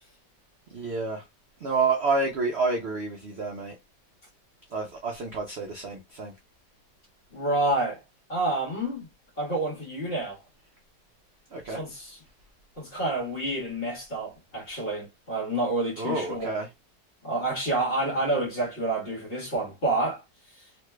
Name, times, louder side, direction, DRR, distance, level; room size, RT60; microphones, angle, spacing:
voice 1, 0.7-1.2 1.6-3.7 4.7-6.3 11.5-11.8 16.0-16.7, right 3 dB, 65° right, 0.6 m, -29 dB
voice 2, 7.3-8.0 8.3-9.1 9.4-10.4 11.7-12.2 12.8-16.5 17.2-20.2 20.5-20.7, right 2 dB, 35° left, 1.5 m, -28 dB
3.2 x 3.1 x 2.2 m
omnidirectional pair, 1.9 m